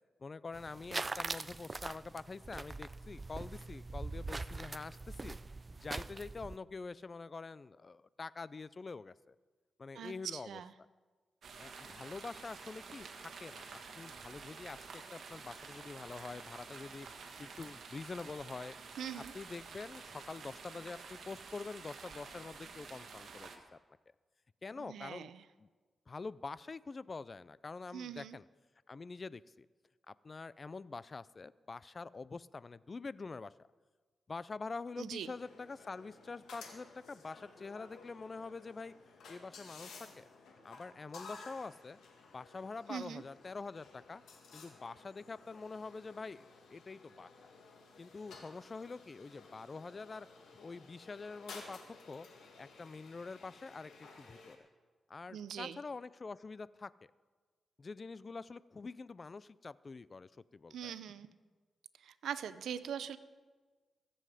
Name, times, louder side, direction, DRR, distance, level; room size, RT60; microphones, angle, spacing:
voice 1, 0.2-5.4 5.8-9.3 9.8-10.9 11.6-17.1 17.4-18.8 19.1-23.8 24.6-25.3 25.6-25.7 26.1-28.4 28.9-29.7 30.1-33.5 34.3-38.9 39.3-40.2 40.6-42.0 42.3-44.2 44.5-47.3 48.0-50.3 50.6-52.3 52.6-54.7 55.1-56.9 57.8-60.9, left 4 dB, 40° left, 19 dB, 0.4 m, -46 dB
sound 1, 0.5-6.6, right 3 dB, 30° right, 0.4 m, -42 dB
voice 2, 9.9-10.7 19.0-19.3 24.8-25.4 27.9-28.4 35.0-35.3 42.9-43.2 55.3-55.8 60.7-61.3 62.0-63.2, right 8 dB, 90° right, 14 dB, 0.6 m, -42 dB
sound 2, 11.4-23.6, right 5 dB, 70° right, 1.6 m, -50 dB
sound 3, 35.2-54.6, left 4 dB, 90° left, 2.1 m, -55 dB
22.0 x 7.8 x 4.9 m, 1.4 s
cardioid pair, 85°, 0 cm